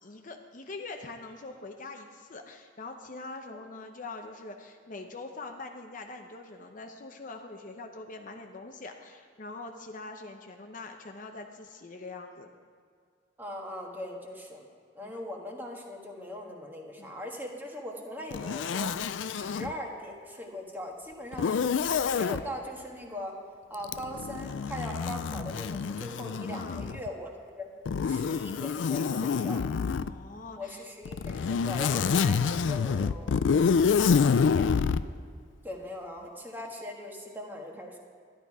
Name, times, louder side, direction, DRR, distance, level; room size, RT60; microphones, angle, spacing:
voice 1, 0.0-12.5 15.0-15.1 17.0-17.1 26.5-26.9 30.0-30.8 34.0-34.7, left 3 dB, 45° left, 4 dB, 0.8 m, -43 dB
voice 2, 13.4-14.7 14.9-18.9 19.3-23.3 23.7-27.7 28.0-29.6 30.6-33.3 35.6-38.0, left 1 dB, 10° right, 0 dB, 1.5 m, -40 dB
Zipper (clothing), 18.3-19.7 21.3-22.4 23.8-27.1 27.9-30.1 31.1-35.0, left 6 dB, 85° left, 0.4 m, -27 dB
12.0 x 11.5 x 4.8 m, 2.2 s
head